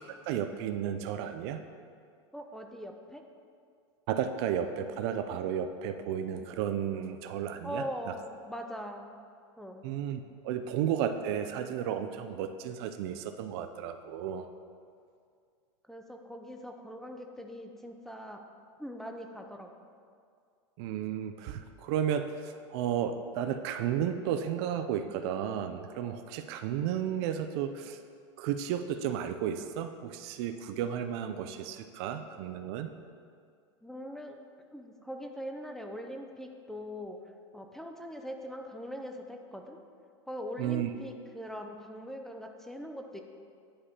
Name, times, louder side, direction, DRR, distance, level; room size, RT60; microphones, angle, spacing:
voice 1, 0.1-1.6 4.1-7.8 9.8-14.5 20.8-28.0 28.4-32.9 40.6-40.9, right 9 dB, 60° right, 9 dB, 0.4 m, -33 dB
voice 2, 2.3-3.2 7.6-9.2 9.6-9.9 10.5-10.6 15.9-18.4 18.8-19.7 33.8-34.4 34.7-37.2 37.5-39.8 40.3-43.2, equal, ahead, 3 dB, 0.5 m, -41 dB
10.0 x 4.8 x 2.8 m, 2.2 s
hypercardioid pair, 115°, 15 cm